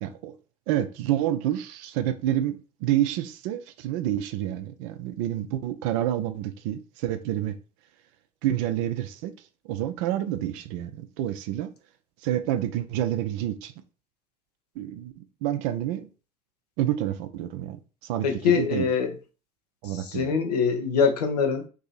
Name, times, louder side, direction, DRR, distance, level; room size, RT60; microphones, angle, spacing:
voice 1, 0.0-0.3 0.7-7.6 8.4-9.3 9.6-11.7 12.2-13.7 14.8-16.1 16.8-19.0 19.8-20.4, right 12 dB, 55° right, 0.5 m, -28 dB
voice 2, 18.2-19.2 19.9-21.7, left 6 dB, 70° left, 0.7 m, -24 dB
2.7 x 2.7 x 3.9 m
figure-of-eight pair, 65°, 21 cm